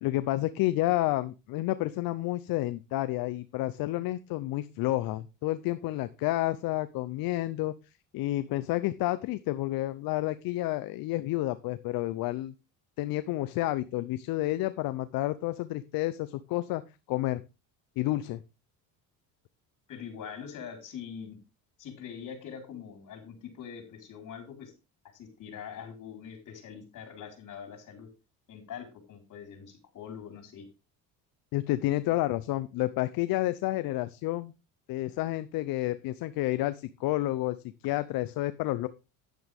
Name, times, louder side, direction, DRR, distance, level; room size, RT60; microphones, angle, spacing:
voice 1, 0.0-7.7 8.1-12.5 13.0-16.8 17.1-17.4 18.0-18.4 31.5-34.5 34.9-37.6 37.8-38.9, left 16 dB, 70° left, 13 dB, 0.7 m, -30 dB
voice 2, 19.9-21.4 21.8-24.7 25.1-28.1 28.5-30.7, left 7 dB, 55° left, 4 dB, 4.5 m, -43 dB
10.5 x 9.3 x 3.5 m, 0.28 s
cardioid pair, 105°, 36 cm